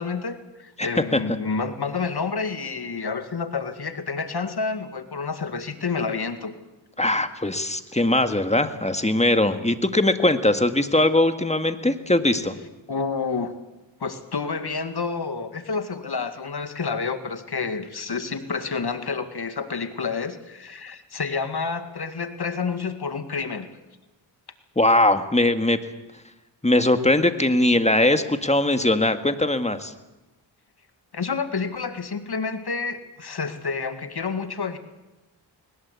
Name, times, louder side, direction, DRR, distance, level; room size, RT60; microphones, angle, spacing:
voice 1, 0.0-6.5 12.9-13.5 14.0-23.7 31.1-34.8, left 4 dB, 60° left, 9 dB, 2.2 m, -29 dB
voice 2, 0.8-1.2 7.0-12.6 24.8-25.8 26.6-29.9, left 1 dB, 15° left, 9 dB, 1.8 m, -21 dB
21.0 x 19.5 x 8.3 m, 1.0 s
cardioid pair, 60°, 45 cm